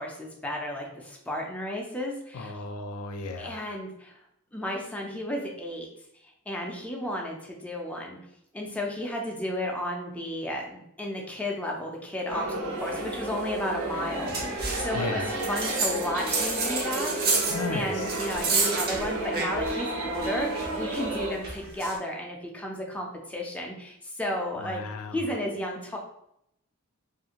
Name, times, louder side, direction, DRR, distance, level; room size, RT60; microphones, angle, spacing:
voice 1, 0.0-2.5 3.4-4.2 4.5-5.9 6.5-8.2 8.5-17.4 17.7-24.8 25.1-26.0, left 1 dB, 5° left, -1 dB, 0.4 m, -33 dB
voice 2, 2.3-3.6 14.9-15.3 17.5-18.1 24.6-25.2, left 3 dB, 80° left, 6 dB, 0.4 m, -34 dB
sound 1, 12.3-21.3, right 2 dB, 65° right, 0.8 m, -32 dB
sound 2, 14.3-14.9 15.4-19.8 20.1-22.0, right 4 dB, 45° right, 0.5 m, -30 dB
2.7 x 2.5 x 2.8 m, 0.76 s
head